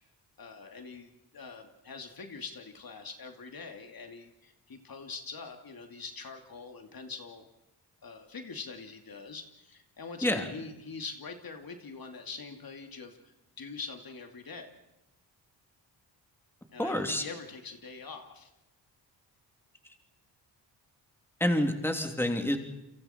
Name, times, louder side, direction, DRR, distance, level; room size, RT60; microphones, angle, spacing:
voice 1, 0.4-7.4 8.0-14.7 16.7-18.5, left 4 dB, 55° left, 4 dB, 2.7 m, -44 dB
voice 2, 16.8-17.2 21.4-22.6, left 1 dB, 5° left, 4 dB, 3.0 m, -28 dB
29.5 x 24.5 x 4.5 m, 0.96 s
cardioid pair, 65°, 42 cm